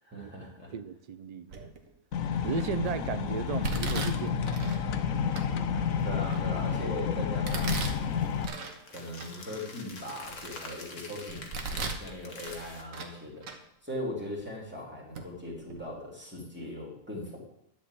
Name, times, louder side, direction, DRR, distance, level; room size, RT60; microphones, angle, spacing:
voice 1, 0.0-0.7 6.0-8.1 8.9-13.4 13.8-17.4, left 1 dB, 10° right, 3.1 m, -39 dB
voice 2, 0.7-1.5 2.4-4.6, right 7 dB, 60° right, 0.4 m, -35 dB
Domestic sounds home sounds, 1.5-1.9 2.5-2.9 3.6-4.8 5.4-5.5 6.0-6.8 7.4-8.8 9.2-9.3 9.9-10.8 11.3-12.1 12.4-13.2 13.4-13.6 14.4-14.5 15.1-15.3 15.6-15.8, right 3 dB, 80° right, 1.7 m, -37 dB
sound 1, 2.1-8.5, left 7 dB, 85° left, 1.2 m, -30 dB
sound 2, 7.8-12.8, left 3 dB, 65° left, 1.9 m, -46 dB
11.5 x 5.4 x 8.4 m
omnidirectional pair, 1.4 m